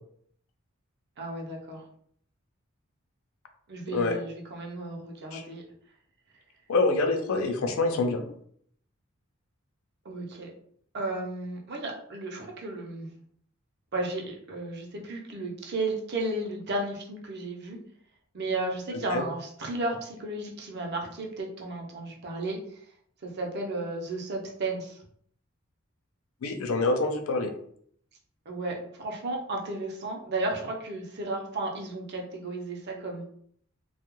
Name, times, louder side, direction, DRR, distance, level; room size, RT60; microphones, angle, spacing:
voice 1, 1.2-1.8 3.7-5.6 10.0-10.5 10.9-13.1 13.9-17.8 18.3-22.6 23.2-25.0 28.5-33.2, right 2 dB, 55° right, 0 dB, 0.6 m, -33 dB
voice 2, 6.7-8.3 19.1-19.2 26.4-27.5, left 3 dB, 85° left, 6 dB, 0.4 m, -26 dB
2.3 x 2.2 x 3.0 m, 0.63 s
head